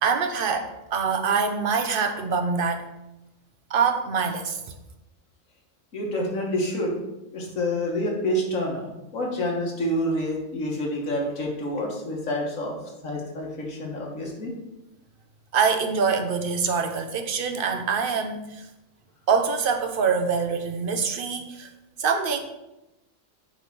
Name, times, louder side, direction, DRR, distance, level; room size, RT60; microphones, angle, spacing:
voice 1, 0.0-2.8 3.7-4.6 15.5-18.7 19.3-21.7 22.0-22.4, right 5 dB, 50° right, 6 dB, 0.9 m, -24 dB
voice 2, 5.9-6.9 7.3-12.8 13.0-14.5, left 1 dB, 85° left, 0 dB, 2.0 m, -28 dB
8.6 x 3.6 x 5.9 m, 0.96 s
omnidirectional pair, 1.3 m